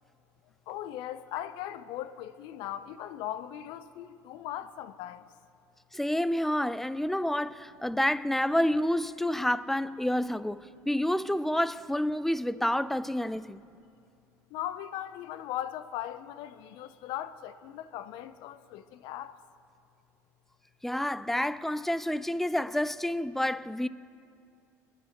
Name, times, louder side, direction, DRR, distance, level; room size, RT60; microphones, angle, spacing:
voice 1, 0.7-5.2 14.5-19.3, left 12 dB, 65° left, 0.6 m, -39 dB
voice 2, 5.9-13.6 20.8-23.9, left 1 dB, 5° left, 0.5 m, -29 dB
29.0 x 10.0 x 3.0 m
hypercardioid pair, 70°, 9 cm